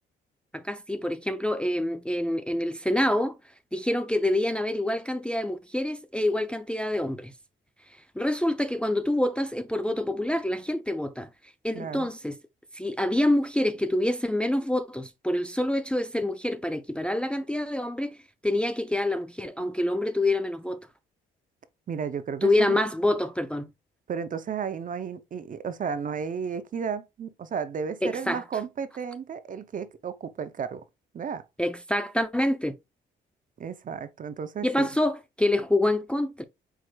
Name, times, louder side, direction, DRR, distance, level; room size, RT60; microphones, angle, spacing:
voice 1, 0.5-3.4 3.7-7.3 8.2-11.3 11.6-12.4 12.7-18.2 18.4-20.8 22.4-23.7 28.0-28.4 31.6-32.8 34.6-36.4, left 1 dB, 5° left, 0.4 m, -26 dB
voice 2, 11.7-12.1 21.9-22.8 24.1-30.8 31.1-31.4 33.6-34.9, right 6 dB, 40° right, 0.6 m, -33 dB
4.7 x 4.5 x 2.2 m
cardioid pair, 90°, 20 cm